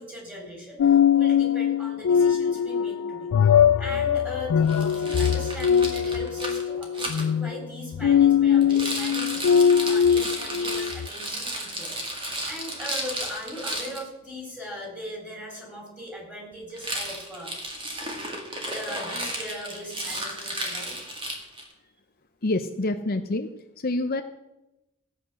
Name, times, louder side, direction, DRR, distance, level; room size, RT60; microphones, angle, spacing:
voice 1, 0.0-17.5 18.6-21.0, equal, 5° right, -1 dB, 4.2 m, -39 dB
sound 1, 0.8-11.1, left 8 dB, 75° left, 0.3 m, -21 dB
Rattle, 4.7-7.3 8.6-14.0 16.7-21.7, right 1 dB, 25° right, 2.2 m, -33 dB
voice 2, 22.4-23.5 23.8-24.2, left 2 dB, 45° left, 6 dB, 0.7 m, -26 dB
16.0 x 8.3 x 6.4 m, 0.97 s
head